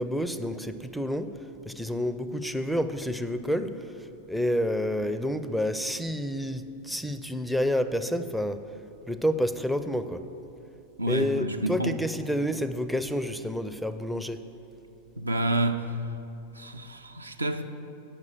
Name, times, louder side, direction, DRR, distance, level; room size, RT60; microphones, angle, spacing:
voice 1, 0.0-1.3 1.6-3.9 4.3-8.6 9.1-10.2 11.1-14.4, equal, ahead, 0.4 m, -29 dB
voice 2, 11.0-12.0 15.2-16.0 16.5-17.6, right 1 dB, 80° right, 0.5 m, -29 dB
8.7 x 6.0 x 7.4 m
figure-of-eight pair, 90°, 0 cm